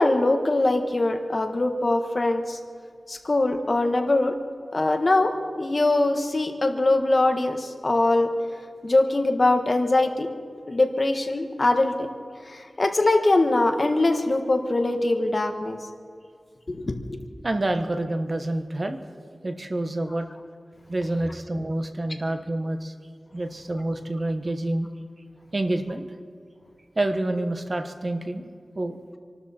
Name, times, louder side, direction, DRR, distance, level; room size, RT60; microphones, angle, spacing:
voice 1, 0.0-2.6 3.1-4.4 4.7-8.3 8.8-10.3 10.7-12.1 12.5-15.8 16.7-17.2, left 2 dB, 45° left, 5 dB, 1.4 m, -22 dB
voice 2, 17.4-19.0 19.4-20.3 20.9-22.9 23.3-24.9 25.5-26.1 27.0-28.5 28.7-29.0, right 1 dB, 40° right, 7 dB, 1.1 m, -27 dB
26.5 x 12.5 x 4.4 m, 2.1 s
wide cardioid pair, 90°, 0 cm